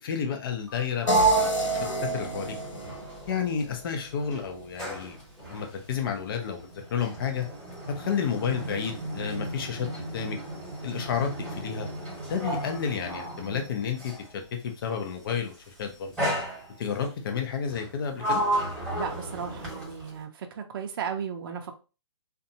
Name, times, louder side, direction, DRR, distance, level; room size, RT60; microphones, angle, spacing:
voice 1, 0.0-1.9 2.1-2.5 3.3-5.2 5.5-7.5 8.0-10.4 10.8-11.9 12.3-14.1 14.6-16.1 16.8-18.4, left 7 dB, 45° left, 4 dB, 0.7 m, -31 dB
Sliding door, 0.6-3.9 4.2-14.3 15.2-15.5 16.2-17.1 17.7-20.2, right 2 dB, 5° left, 1.4 m, -33 dB
sound 1, 1.1-4.1, right 1 dB, 90° left, 1.0 m, -30 dB
voice 2, 18.9-21.8, right 7 dB, 50° right, 4 dB, 0.5 m, -35 dB
2.5 x 2.3 x 2.7 m, 0.32 s
hypercardioid pair, 150°, 16 cm